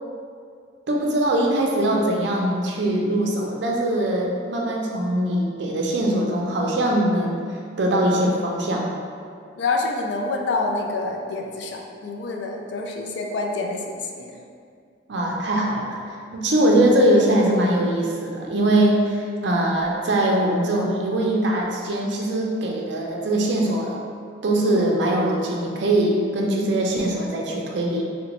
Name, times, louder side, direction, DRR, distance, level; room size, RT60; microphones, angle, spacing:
voice 1, 0.9-7.4 7.8-8.9 15.1-16.0 16.3-24.0 24.4-28.0, right 1 dB, 65° right, -1 dB, 0.5 m, -21 dB
voice 2, 9.6-14.4 16.5-16.9, left 3 dB, 65° left, 1 dB, 0.3 m, -27 dB
3.8 x 2.1 x 3.0 m, 2.2 s
head